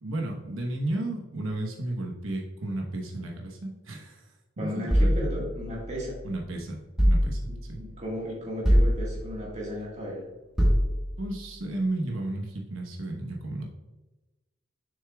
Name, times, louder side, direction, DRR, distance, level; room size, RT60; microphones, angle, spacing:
voice 1, 0.0-4.3 4.6-5.3 6.2-7.8 11.2-13.7, right 1 dB, 80° right, 1 dB, 1.1 m, -33 dB
voice 2, 4.6-6.2 7.8-10.2, equal, 35° right, -3 dB, 1.6 m, -35 dB
sound 1, 4.9-6.3 7.0-7.8 8.6-9.5 10.6-11.4, equal, 5° right, 1.5 m, -24 dB
7.1 x 6.5 x 2.3 m, 1.1 s
head